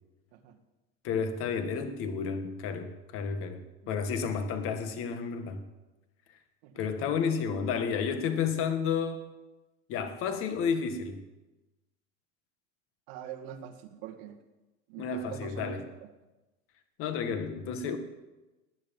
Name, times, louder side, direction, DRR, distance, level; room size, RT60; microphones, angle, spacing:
voice 1, 0.3-0.6 6.6-6.8 13.1-14.4 14.9-15.8, right 9 dB, 55° right, 4 dB, 1.7 m, -43 dB
voice 2, 1.0-5.6 6.8-9.2 9.9-11.2 15.0-15.9 17.0-18.0, left 6 dB, 40° left, 8 dB, 1.7 m, -31 dB
18.5 x 9.6 x 5.4 m, 1.1 s
supercardioid pair, 155°, 34 cm